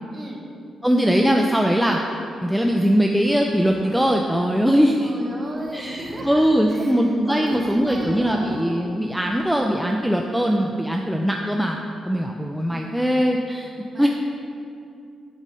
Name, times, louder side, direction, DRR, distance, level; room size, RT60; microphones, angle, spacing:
voice 1, 0.1-0.4 4.9-8.8 12.7-13.1 13.9-14.1, right 1 dB, 30° right, -1 dB, 1.0 m, -35 dB
voice 2, 0.8-2.0 2.4-5.1 5.7-11.8 12.0-13.7 14.0-14.1, equal, ahead, 1 dB, 0.3 m, -21 dB
Zipper (clothing), 3.1-4.6 5.4-6.7 7.5-8.6 9.2-9.6, right 2 dB, 75° right, 1.2 m, -44 dB
8.9 x 3.1 x 5.4 m, 2.5 s
cardioid pair, 125°, 0 cm